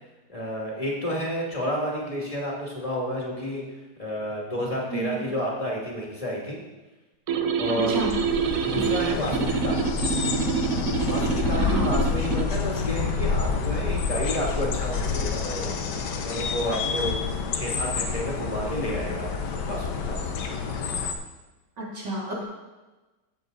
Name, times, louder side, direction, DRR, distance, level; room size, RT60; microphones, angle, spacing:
voice 1, 0.3-3.6 4.0-6.6 7.6-8.0 8.4-9.9 11.1-15.7 16.2-17.2 17.5-20.4, equal, 20° left, -3 dB, 2.5 m, -31 dB
voice 2, 4.9-5.3 7.7-8.1 8.7-8.8 11.5-11.9 21.8-22.4, right 1 dB, 90° right, -5 dB, 3.7 m, -30 dB
sound 1, 7.3-12.5, right 6 dB, 60° right, 1.1 m, -26 dB
sound 2, 7.9-21.1, left 5 dB, 75° left, 1.5 m, -28 dB
15.5 x 7.8 x 4.0 m, 1.1 s
omnidirectional pair, 1.8 m